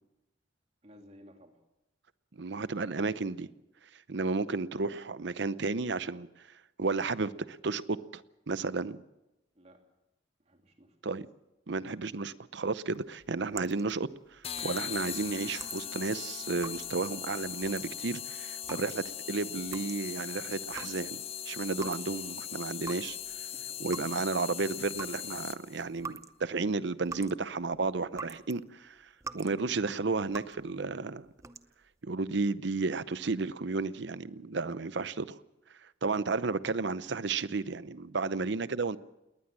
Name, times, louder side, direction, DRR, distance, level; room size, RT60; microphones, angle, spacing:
voice 1, 0.8-1.6 9.5-9.8 10.4-11.0 22.0-22.2 23.5-23.8 38.2-38.5, equal, 35° right, 3.0 m, -56 dB
voice 2, 2.3-3.5 4.1-6.3 6.8-8.2 8.5-9.0 11.0-11.2 11.7-23.2 23.8-29.0 29.3-31.3 32.0-35.4 36.0-39.0, right 3 dB, 60° right, 0.7 m, -33 dB
sound 1, 12.9-22.4 22.7-28.6 29.0-29.6 29.9-30.7 31.3-31.9, right 4 dB, 15° right, 0.7 m, -46 dB
sound 2, 14.4-25.8, left 10 dB, 30° left, 0.7 m, -39 dB
20.0 x 19.5 x 7.5 m
head